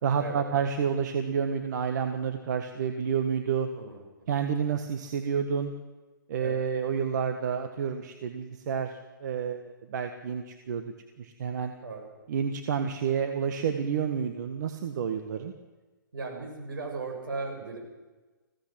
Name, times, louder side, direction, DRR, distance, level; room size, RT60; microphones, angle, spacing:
voice 1, 0.0-3.7 4.3-5.7 6.3-10.8 11.2-11.7 12.3-15.5, right 7 dB, 55° right, 7 dB, 1.6 m, -29 dB
voice 2, 16.1-17.8, right 4 dB, 80° right, 1 dB, 7.1 m, -37 dB
21.0 x 16.5 x 7.5 m, 1.2 s
hypercardioid pair, 140°, 11 cm